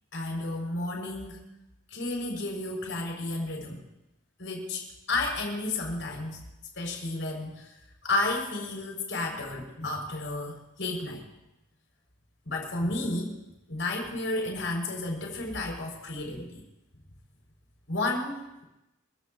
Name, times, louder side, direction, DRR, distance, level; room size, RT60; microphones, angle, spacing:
voice 1, 0.1-1.5 1.9-3.8 4.4-6.4 6.7-7.7 8.0-11.3 12.4-13.4 13.7-16.6 17.9-18.6, left 2 dB, 70° left, 0 dB, 4.8 m, -32 dB
25.5 x 15.5 x 2.6 m, 0.94 s
head